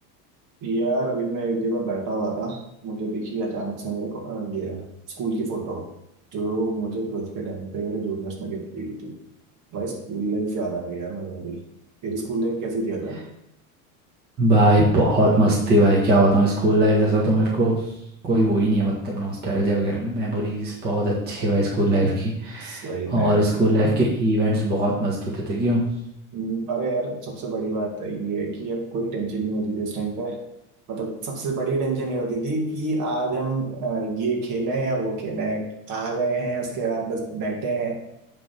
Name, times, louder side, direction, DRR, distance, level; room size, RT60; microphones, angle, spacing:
voice 1, 0.6-4.9 5.2-5.9 6.3-9.1 9.7-11.6 12.0-13.2 22.6-23.5 26.3-30.4 30.9-38.0, right 3 dB, 45° right, 0 dB, 2.3 m, -28 dB
voice 2, 14.4-17.9 18.2-25.8, right 1 dB, 20° right, -5 dB, 1.7 m, -20 dB
9.1 x 3.8 x 5.9 m, 0.81 s
supercardioid pair, 155°, 43 cm